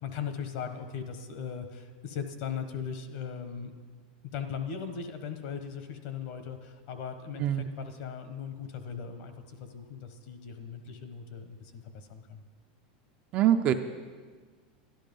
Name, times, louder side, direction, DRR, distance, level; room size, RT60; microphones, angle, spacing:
voice 1, 0.0-3.7 4.3-12.5, left 7 dB, 45° left, 8 dB, 1.0 m, -38 dB
voice 2, 13.3-13.7, right 11 dB, 25° right, 7 dB, 0.4 m, -24 dB
12.0 x 11.5 x 5.3 m, 1.5 s
supercardioid pair, 175°, 5 cm